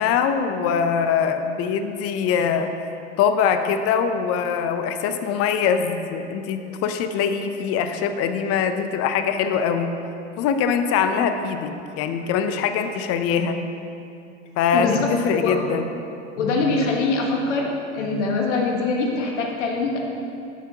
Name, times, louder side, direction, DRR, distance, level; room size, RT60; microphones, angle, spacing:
voice 1, 0.0-2.7 3.2-9.9 10.4-13.6 14.6-15.8, left 7 dB, 45° left, 8 dB, 0.6 m, -23 dB
voice 2, 14.7-15.1 15.4-15.6 16.4-17.7 17.9-20.0, left 3 dB, 80° left, 0 dB, 1.4 m, -23 dB
12.0 x 5.7 x 2.9 m, 2.7 s
hypercardioid pair, 100°, 35 cm